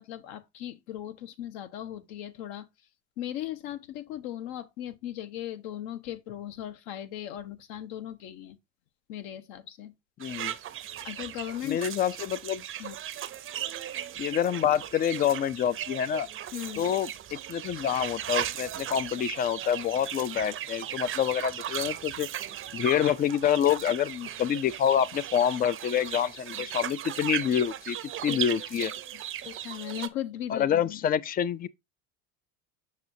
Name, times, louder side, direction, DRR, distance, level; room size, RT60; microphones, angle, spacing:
voice 1, 0.0-2.7 3.2-8.6 9.1-9.9 11.0-11.8 12.8-13.0 16.5-16.9 26.6-26.7 28.3-28.8 29.4-31.0, left 12 dB, 65° left, 1.0 m, -38 dB
voice 2, 10.2-10.5 11.6-12.6 14.2-16.3 16.8-22.3 22.7-28.0 28.2-28.9 30.5-31.7, left 9 dB, 25° left, 0.3 m, -27 dB
sound 1, 10.2-30.1, right 11 dB, 30° right, 0.6 m, -37 dB
6.5 x 6.1 x 2.7 m
hypercardioid pair, 95°, 41 cm